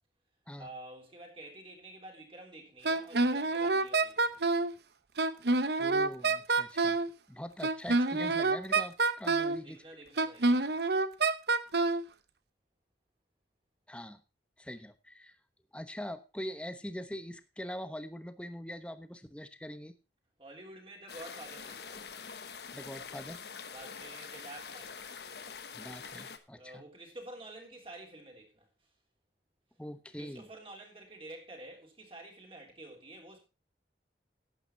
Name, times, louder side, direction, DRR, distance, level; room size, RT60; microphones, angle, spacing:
voice 1, 0.5-4.4 9.4-10.8 20.4-22.0 23.7-25.1 26.5-28.7 30.2-33.4, right 1 dB, 30° right, 3.4 m, -49 dB
Wind instrument woodwind instrument, 2.8-4.7 5.2-7.1 7.6-9.6 10.2-12.0, right 3 dB, 65° right, 0.9 m, -27 dB
voice 2, 5.8-7.0 7.3-9.8 13.9-14.2 14.6-15.4 15.7-19.9 22.7-23.4 25.7-26.8 29.8-30.5, equal, 5° left, 1.0 m, -43 dB
sound 1, 21.1-26.4, left 6 dB, 65° left, 1.2 m, -45 dB
12.0 x 9.1 x 4.4 m
head